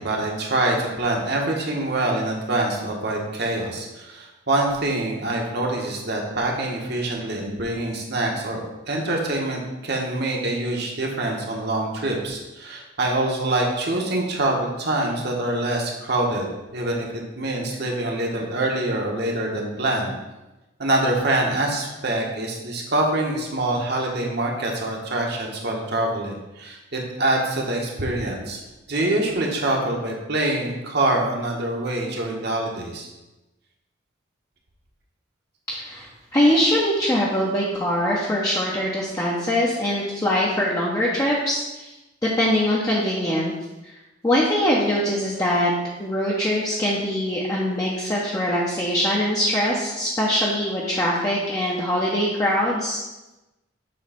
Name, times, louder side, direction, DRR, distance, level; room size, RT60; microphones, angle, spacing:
voice 1, 0.0-20.1 20.8-28.6 28.9-33.1, right 2 dB, 55° right, -1 dB, 1.4 m, -25 dB
voice 2, 35.7-41.9 42.2-43.5 44.2-45.7 46.0-53.0, left 1 dB, 20° left, -5 dB, 0.8 m, -22 dB
7.5 x 3.2 x 5.8 m, 1.0 s
head